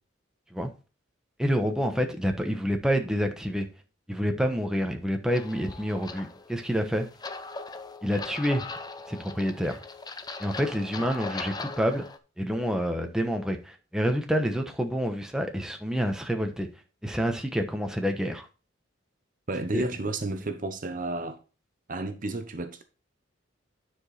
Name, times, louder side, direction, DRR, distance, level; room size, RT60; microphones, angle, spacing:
voice 1, 1.4-3.7 4.1-7.1 8.0-8.6 9.1-9.8 10.4-12.1 12.4-16.7 17.0-18.5 19.7-19.9, equal, 5° right, 1.0 m, -28 dB
sound 1, 5.3-12.2, left 3 dB, 20° left, 0.6 m, -40 dB
voice 2, 19.5-21.4 21.9-22.8, right 2 dB, 45° right, 0.8 m, -32 dB
9.7 x 5.0 x 4.1 m
head